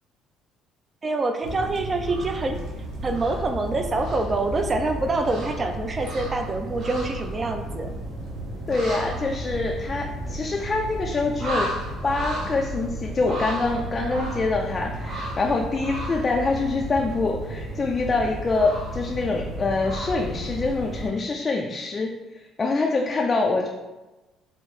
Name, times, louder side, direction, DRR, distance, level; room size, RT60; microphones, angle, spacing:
voice 1, 1.0-2.6 3.0-7.9, right 2 dB, 30° right, 6 dB, 0.5 m, -26 dB
sound 1, 1.4-21.1, right 1 dB, 60° right, 1.1 m, -33 dB
voice 2, 8.7-11.7 12.0-23.7, left 3 dB, 30° left, 0 dB, 0.4 m, -25 dB
4.3 x 2.0 x 4.0 m, 1.1 s
cardioid pair, 95°, 0 cm